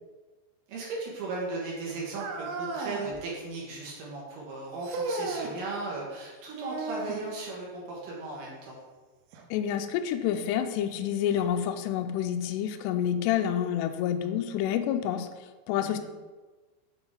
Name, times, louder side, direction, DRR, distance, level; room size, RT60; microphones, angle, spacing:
voice 1, 0.7-8.8 15.7-16.0, right 3 dB, 60° right, -4 dB, 2.4 m, -36 dB
sound 1, 2.1-3.2 4.8-5.6 6.6-7.3 9.3-9.4 10.3-10.4 11.3-11.4, right 3 dB, 90° right, 3.0 m, -34 dB
voice 2, 9.5-15.3 15.7-16.0, left 9 dB, 85° left, 7 dB, 2.4 m, -28 dB
8.1 x 3.9 x 3.7 m, 1.3 s
omnidirectional pair, 5.3 m